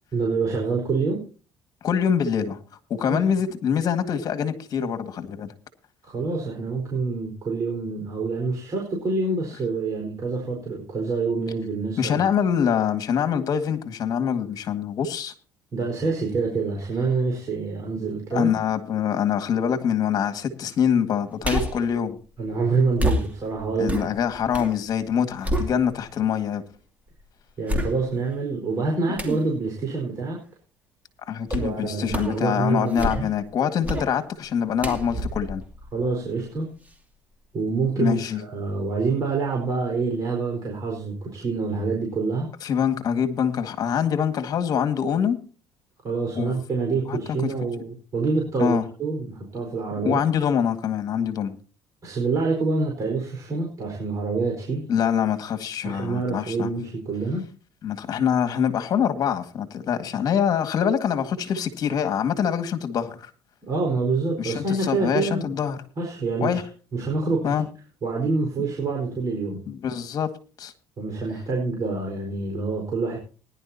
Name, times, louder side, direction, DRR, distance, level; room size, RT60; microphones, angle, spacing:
voice 1, 0.1-1.2 3.0-3.2 6.0-12.2 15.7-18.5 22.4-24.0 27.6-30.4 31.5-33.3 35.9-36.7 37.5-42.5 46.0-50.2 52.0-54.8 55.8-57.4 63.6-65.5 66.0-66.6 66.9-67.5 68.0-69.6 71.0-73.2, right 4 dB, 45° right, 4.6 m, -26 dB
voice 2, 1.8-2.6 3.0-5.5 12.0-15.3 18.3-22.2 23.8-26.6 31.3-35.6 38.0-38.4 42.6-45.4 46.4-46.5 47.1-47.2 48.6-48.8 50.0-51.6 54.9-56.7 57.8-63.3 64.4-65.8 66.4-66.6 67.4-67.7 69.7-70.3 70.6-70.7, left 8 dB, 50° left, 1.9 m, -24 dB
sound 1, 21.4-21.9 23.0-24.8 25.1-26.2 26.7-26.8 27.7-28.3 29.2-29.5 31.5-31.8 32.1-32.4 32.8-33.5 33.8-34.1 34.8-36.5 36.9-37.0, right 1 dB, 20° right, 2.7 m, -28 dB
20.0 x 11.0 x 2.8 m
cardioid pair, 105°, 8 cm